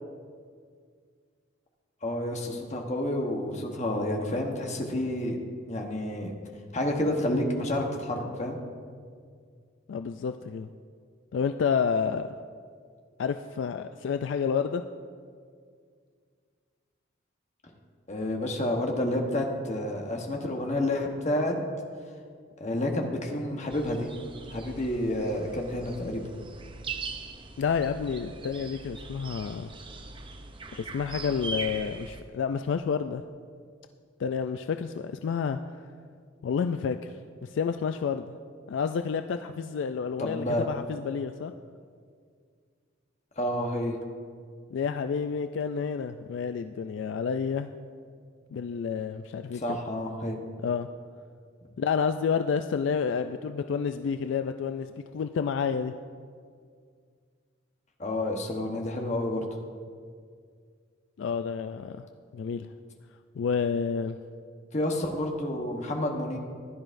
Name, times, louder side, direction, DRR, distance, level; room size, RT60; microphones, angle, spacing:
voice 1, 2.0-5.4 5.7-6.3 6.7-8.6 18.1-21.5 22.6-24.1 24.5-26.2 40.2-40.7 43.4-44.0 49.5-50.4 58.0-59.4 64.7-66.4, left 1 dB, 35° left, 2 dB, 1.1 m, -29 dB
voice 2, 9.9-10.7 11.3-12.3 13.2-14.8 27.6-29.7 30.7-33.2 34.2-35.6 36.4-37.1 37.4-38.3 38.7-41.5 44.7-47.7 48.5-49.8 50.6-50.9 51.8-55.9 61.2-62.1 62.3-62.7 63.3-64.2, left 6 dB, 70° left, 8 dB, 0.3 m, -29 dB
sound 1, 23.7-32.2, right 3 dB, 25° right, 0.5 m, -41 dB
15.0 x 11.0 x 2.6 m, 2.1 s
head